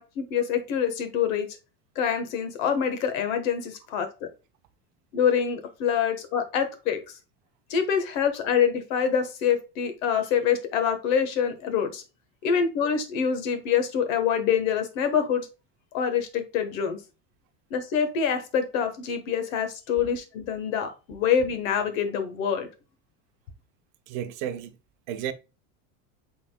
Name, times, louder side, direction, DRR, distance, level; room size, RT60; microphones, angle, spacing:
voice 1, 0.0-1.5 1.9-4.3 5.1-7.1 7.7-12.0 12.4-15.5 15.9-17.0 17.7-22.7, left 7 dB, 80° left, 1.4 m, -26 dB
voice 2, 24.1-24.8 25.1-25.3, right 10 dB, 50° right, 0.6 m, -32 dB
5.6 x 4.0 x 2.2 m
cardioid pair, 175°, 40 cm